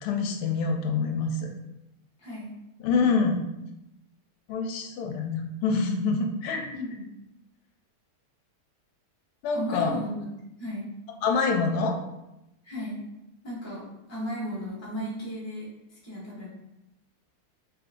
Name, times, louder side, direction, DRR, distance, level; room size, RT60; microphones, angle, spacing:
voice 1, 0.0-1.5 2.8-3.4 4.5-6.7 9.4-9.9 11.2-12.0, left 4 dB, 80° left, 3 dB, 1.5 m, -26 dB
voice 2, 2.2-2.5 6.7-7.0 9.5-10.3 10.6-10.9 12.6-13.0 13.4-13.8 14.1-16.5, equal, 10° left, -6 dB, 1.0 m, -35 dB
3.7 x 3.4 x 3.6 m, 0.90 s
omnidirectional pair, 2.4 m